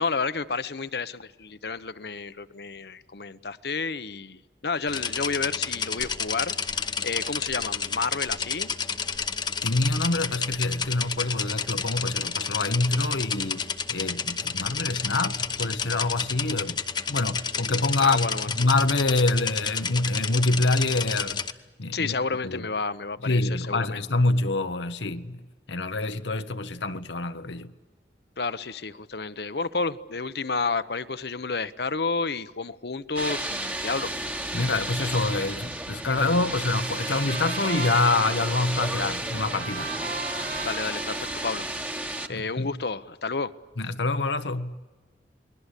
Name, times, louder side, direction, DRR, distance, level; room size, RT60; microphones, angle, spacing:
voice 1, 0.0-8.7 18.0-18.5 21.9-24.1 28.4-34.1 40.6-41.7 42.3-43.5, left 4 dB, 65° left, 0.9 m, -30 dB
sound 1, 4.9-21.5, left 6 dB, 25° left, 0.8 m, -30 dB
voice 2, 9.6-16.8 17.1-18.3 18.5-21.4 21.8-22.1 22.4-22.7 23.2-25.4 25.7-27.7 34.5-39.9 42.3-42.7 43.8-44.7, left 2 dB, 85° left, 1.2 m, -26 dB
sound 2, 33.2-42.3, right 1 dB, 10° right, 1.2 m, -32 dB
Trumpet, 36.1-42.4, right 4 dB, 50° right, 2.5 m, -38 dB
29.0 x 21.0 x 8.3 m
head